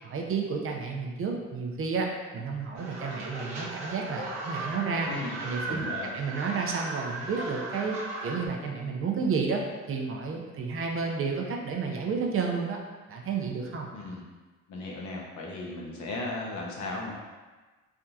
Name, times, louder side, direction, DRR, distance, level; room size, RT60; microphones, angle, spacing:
voice 1, 0.0-5.1 5.4-5.8 6.1-8.0 8.2-9.6 9.9-12.8 13.1-13.9, right 5 dB, 45° right, 1 dB, 0.5 m, -31 dB
sound 1, 2.7-8.5, right 2 dB, 60° right, 0.9 m, -37 dB
voice 2, 5.1-5.4 5.6-6.1 13.9-14.2 14.7-17.1, left 2 dB, 70° left, -1 dB, 0.7 m, -36 dB
3.4 x 2.7 x 2.3 m, 1.3 s
cardioid pair, 90°, 30 cm